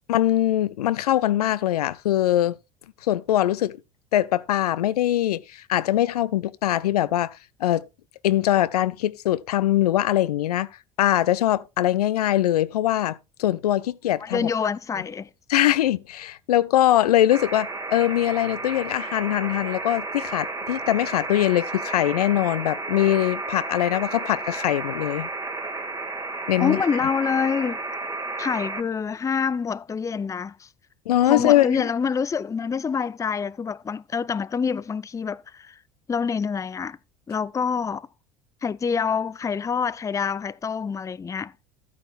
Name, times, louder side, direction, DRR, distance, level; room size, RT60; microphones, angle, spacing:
voice 1, 0.1-2.6 3.0-3.8 4.1-7.8 8.2-10.7 11.0-14.5 15.5-25.3 26.5-26.8 31.1-31.8, left 13 dB, 80° left, 0.5 m, -22 dB
voice 2, 14.2-15.3 26.6-27.8 28.4-30.7 31.3-35.8 36.1-37.0 37.3-38.1 38.6-41.5, left 6 dB, 15° left, 0.4 m, -26 dB
sound 1, 17.3-28.8, right 3 dB, 15° right, 1.7 m, -32 dB
13.0 x 9.2 x 2.4 m
hypercardioid pair, 70°, 20 cm